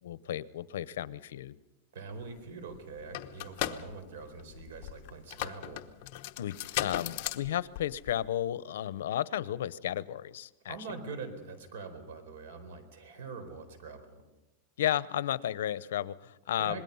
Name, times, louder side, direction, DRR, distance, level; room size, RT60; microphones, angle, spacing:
voice 1, 0.0-1.6 6.4-10.8 14.8-16.8, left 11 dB, 90° left, 18 dB, 0.7 m, -33 dB
voice 2, 1.9-5.9 10.7-14.2 16.6-16.8, right 4 dB, 85° right, 10 dB, 4.4 m, -43 dB
sound 1, 2.4-2.5 2.7-8.4, left 14 dB, 50° left, 1.0 m, -37 dB
26.5 x 20.5 x 5.6 m, 1.1 s
supercardioid pair, 160°, 0 cm